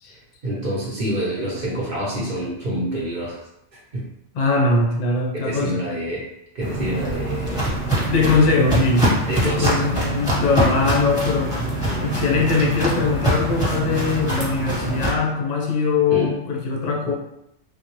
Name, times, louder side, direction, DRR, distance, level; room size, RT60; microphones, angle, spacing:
voice 1, 0.4-3.4 3.9-4.0 5.3-6.2 6.5-7.6 9.3-9.9 16.1-16.3, right 1 dB, 55° right, -5 dB, 0.9 m, -27 dB
voice 2, 4.3-5.8 7.6-7.7 8.1-9.1 9.4-11.6 12.0-17.1, left 4 dB, 50° left, 0 dB, 0.5 m, -21 dB
Walk footsteps, 6.6-15.1, right 1 dB, 5° right, 0.9 m, -23 dB
3.5 x 2.0 x 3.0 m, 0.80 s
omnidirectional pair, 1.2 m